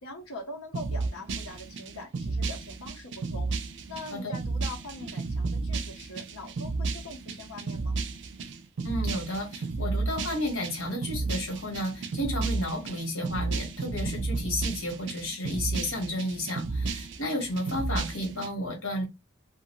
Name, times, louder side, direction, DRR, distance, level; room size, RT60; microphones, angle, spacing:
voice 1, 0.0-3.5 3.9-8.0, left 2 dB, 85° left, 0.7 m, -42 dB
sound 1, 0.7-18.5, right 3 dB, 55° right, 0.4 m, -33 dB
voice 2, 8.8-19.0, left 1 dB, 70° left, 1.5 m, -32 dB
2.6 x 2.5 x 2.9 m
head